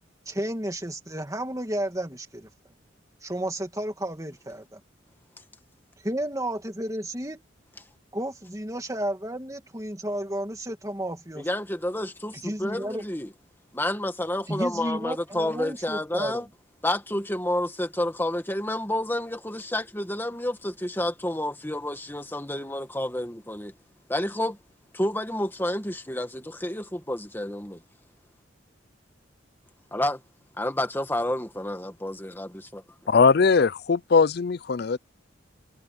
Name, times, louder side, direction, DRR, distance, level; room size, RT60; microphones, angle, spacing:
voice 1, 0.3-2.5 3.2-4.8 6.0-7.4 8.1-11.5 12.3-13.0 14.5-16.5, right 1 dB, 15° right, 2.4 m, -32 dB
voice 2, 11.4-13.3 13.7-16.4 16.8-23.7 24.1-24.6 24.9-27.8 29.9-30.2 30.6-32.8, left 1 dB, 10° left, 1.8 m, -29 dB
voice 3, 33.1-35.0, left 5 dB, 55° left, 0.5 m, -20 dB
head